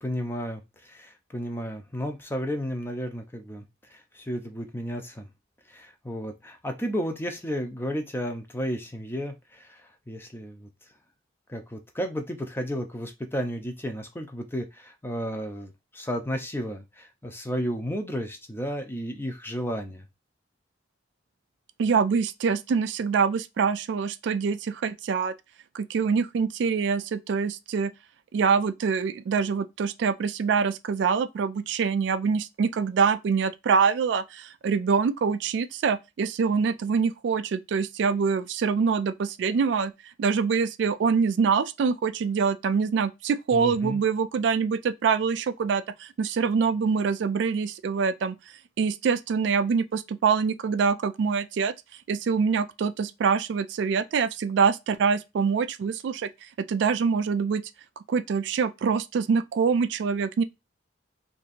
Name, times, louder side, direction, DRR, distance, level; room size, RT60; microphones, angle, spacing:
voice 1, 0.0-3.6 3.9-5.3 5.7-10.7 11.5-20.1 43.5-44.0, equal, 10° left, 0.6 m, -33 dB
voice 2, 21.8-25.3 25.7-27.9 28.3-39.9 40.2-48.4 48.8-51.7 52.1-57.6 58.1-60.4, right 5 dB, 65° right, 0.3 m, -25 dB
2.8 x 2.6 x 4.1 m
head